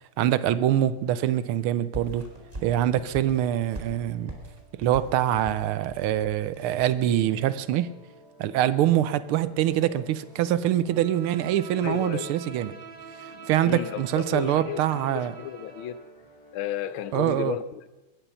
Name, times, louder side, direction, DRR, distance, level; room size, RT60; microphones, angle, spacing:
voice 1, 0.2-2.3 2.6-4.3 4.7-7.9 8.4-12.7 13.2-15.3 17.1-17.6, right 12 dB, 80° right, 1.6 m, -24 dB
sound 1, 1.9-6.9, right 1 dB, 15° right, 4.1 m, -41 dB
sound 2, 2.2-17.0, equal, 45° left, 3.8 m, -54 dB
Bowed string instrument, 10.9-16.1, right 6 dB, 60° right, 1.9 m, -45 dB
voice 2, 11.8-12.3 13.3-16.0 16.5-17.9, left 11 dB, 75° left, 1.4 m, -33 dB
22.5 x 10.0 x 5.6 m
omnidirectional pair, 2.4 m